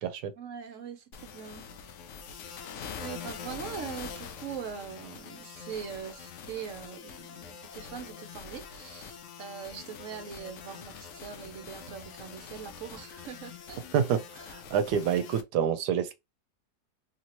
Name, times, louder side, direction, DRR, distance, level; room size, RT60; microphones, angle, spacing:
voice 1, 0.4-1.6 3.0-13.8, right 7 dB, 60° right, 0.9 m, -42 dB
sound 1, 1.1-15.4, left 6 dB, 65° left, 0.7 m, -44 dB
voice 2, 13.9-16.1, right 8 dB, 90° right, 1.2 m, -28 dB
3.2 x 2.8 x 2.9 m
omnidirectional pair, 1.7 m